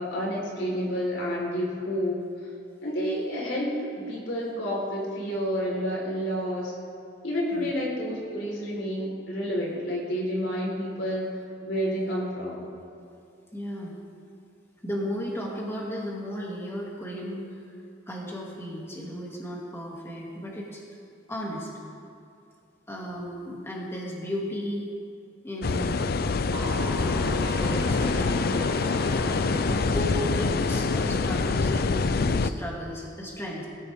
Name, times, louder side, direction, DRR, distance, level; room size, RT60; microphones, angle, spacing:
voice 1, 0.0-2.2 2.8-6.7 7.2-11.3 11.6-12.7, equal, 90° left, -3 dB, 4.3 m, -29 dB
voice 2, 13.5-13.9 14.8-17.7 18.1-20.8 21.3-21.7 22.9-24.9 25.4-26.2 27.0-28.3 29.7-33.7, equal, 15° left, -4 dB, 2.5 m, -35 dB
sound 1, 25.6-32.5, left 4 dB, 55° left, 0.5 m, -25 dB
sound 2, 26.5-31.8, right 1 dB, 30° right, 2.9 m, -37 dB
20.5 x 14.5 x 3.7 m, 2.6 s
head